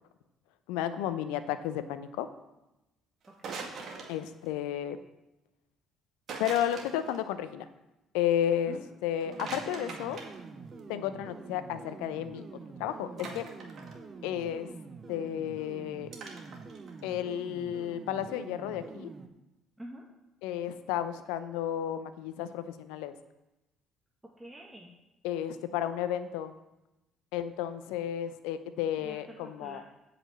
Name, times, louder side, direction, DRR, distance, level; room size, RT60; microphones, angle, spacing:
voice 1, 0.7-2.3 4.1-5.0 6.4-7.6 8.1-10.2 10.9-12.4 12.8-13.4 14.2-14.7 15.1-16.1 17.0-19.1 20.4-23.1 25.2-26.5 27.3-29.8, left 10 dB, 80° left, 12 dB, 0.6 m, -32 dB
sound 1, 3.2-4.5 6.3-7.2 9.2-10.8 13.2-13.9 16.1-17.0, right 4 dB, 60° right, 2.1 m, -42 dB
voice 2, 3.3-3.7 8.7-8.9 19.8-20.0 24.4-24.9 29.0-29.9, right 1 dB, 10° right, -2 dB, 1.7 m, -47 dB
sound 2, 9.2-19.3, right 4 dB, 40° right, 1.0 m, -46 dB
8.1 x 6.0 x 7.3 m, 0.97 s
hypercardioid pair, 55°, 0 cm